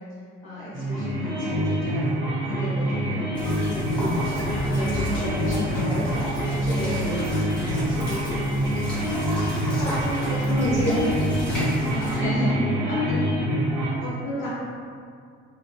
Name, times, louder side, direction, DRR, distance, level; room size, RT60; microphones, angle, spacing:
voice 1, 0.4-2.1 2.4-3.8 4.3-6.2 6.6-8.8 9.8-10.9 11.5-12.5 12.9-13.2 14.0-14.5, left 1 dB, 45° left, -12 dB, 0.8 m, -32 dB
sound 1, 0.7-13.9, equal, 50° right, 1.0 m, -26 dB
voice 2, 2.9-3.3 7.8-7.9 9.0-10.4 10.8-10.9 12.3-12.7 12.9-13.0 13.7-14.0, right 2 dB, 20° right, -11 dB, 1.3 m, -43 dB
sound 2, 3.3-12.2, equal, 5° left, 1.1 m, -32 dB
2.7 x 2.3 x 2.2 m, 2.3 s
figure-of-eight pair, 60°, 38 cm